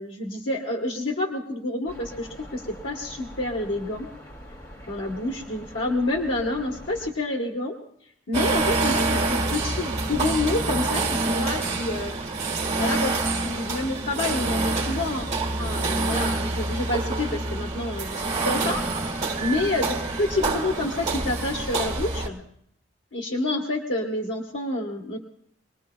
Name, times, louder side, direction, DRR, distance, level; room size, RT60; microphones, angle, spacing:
voice 1, 0.0-4.1 4.9-7.7 8.3-12.1 12.8-15.2 15.6-22.4 23.1-25.2, left 2 dB, 75° left, -1 dB, 1.4 m, -28 dB
sound 1, 1.9-7.1, equal, 20° left, 2.1 m, -43 dB
sound 2, 8.3-22.3, right 3 dB, 35° right, 1.8 m, -26 dB
25.0 x 19.5 x 2.3 m, 0.69 s
head